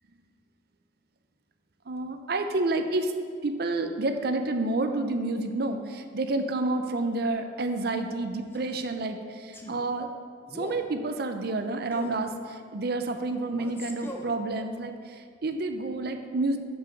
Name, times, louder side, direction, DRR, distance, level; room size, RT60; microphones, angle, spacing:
voice 1, 1.9-3.1 3.4-10.1 10.5-16.6, right 2 dB, 55° right, 6 dB, 0.6 m, -29 dB
Male speech man speaking, 8.5-8.9 9.5-9.8 10.5-10.9 11.9-12.2 13.5-14.4, left 1 dB, 10° left, 0.7 m, -41 dB
7.3 x 6.0 x 5.7 m, 2.1 s
head